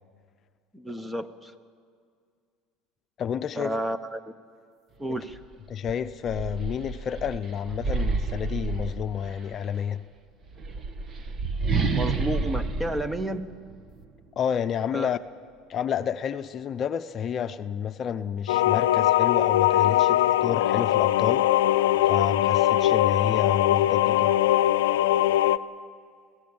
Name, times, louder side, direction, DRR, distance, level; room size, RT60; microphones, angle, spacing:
voice 1, 0.7-1.5 3.5-4.3 5.0-5.4 11.8-13.5 14.9-15.1, right 1 dB, 10° right, 13 dB, 1.1 m, -31 dB
voice 2, 3.2-3.7 5.7-10.0 14.4-15.2 15.7-21.5 22.0-24.3, left 8 dB, 45° left, 10 dB, 0.7 m, -30 dB
sound 1, 5.3-5.4 5.8-9.5 10.4-14.1, right 4 dB, 40° right, 1.6 m, -30 dB
sound 2, 18.5-25.6, left 13 dB, 90° left, 0.5 m, -21 dB
25.5 x 16.5 x 7.3 m, 2.2 s
supercardioid pair, 95°, 0 cm